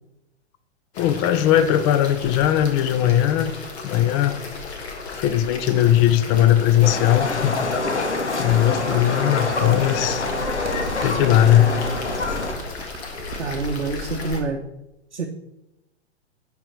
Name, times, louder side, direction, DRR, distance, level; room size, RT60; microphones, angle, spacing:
sound 1, 0.9-14.4, left 4 dB, 65° left, 1.6 m, -35 dB
voice 1, 1.0-3.5 3.8-4.4 5.1-7.7 8.4-10.2 11.0-11.7, left 11 dB, 30° left, 12 dB, 0.4 m, -19 dB
Livestock farm animals working animals, 6.8-12.5, left 3 dB, 85° left, 1.1 m, -26 dB
Crumpling crinkling, 8.4-13.7, right 5 dB, 30° right, 0.9 m, -37 dB
voice 2, 13.4-14.6 15.1-15.3, right 4 dB, 90° right, 3 dB, 0.7 m, -26 dB
9.9 x 3.7 x 4.5 m, 0.92 s
figure-of-eight pair, 110°, 34 cm